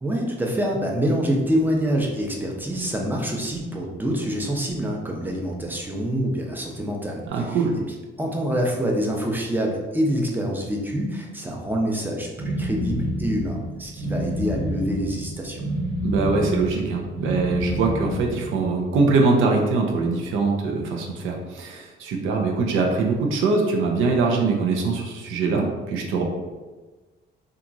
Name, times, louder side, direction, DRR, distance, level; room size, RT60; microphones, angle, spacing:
voice 1, 0.0-7.6 8.2-15.6, equal, 10° right, -1 dB, 0.6 m, -26 dB
voice 2, 7.3-7.7 16.0-26.2, right 4 dB, 85° right, 1 dB, 0.6 m, -23 dB
sound 1, 12.4-18.7, equal, 65° right, 0.9 m, -28 dB
2.9 x 2.4 x 2.5 m, 1.2 s
cardioid pair, 90°, 20 cm